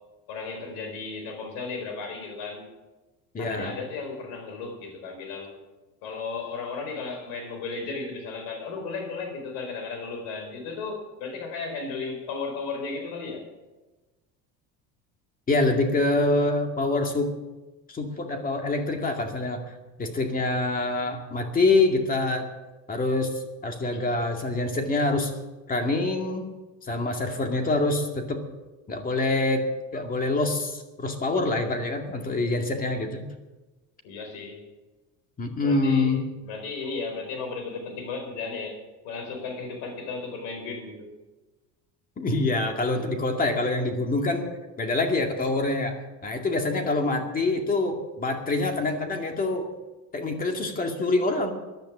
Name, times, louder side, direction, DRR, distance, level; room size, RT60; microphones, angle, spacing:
voice 1, 0.3-2.6 3.4-5.6 6.0-13.5 34.0-34.6 35.6-38.8 39.0-41.1, left 4 dB, 90° left, 4 dB, 4.6 m, -35 dB
voice 2, 3.3-3.7 15.5-17.4 17.9-19.7 20.0-22.5 22.9-25.3 25.7-26.5 26.9-28.4 28.9-33.3 35.4-36.2 42.2-44.5 44.8-49.7 50.1-51.5, left 2 dB, 25° left, 4 dB, 2.2 m, -25 dB
15.0 x 10.5 x 7.3 m, 1.1 s
cardioid pair, 135°, 33 cm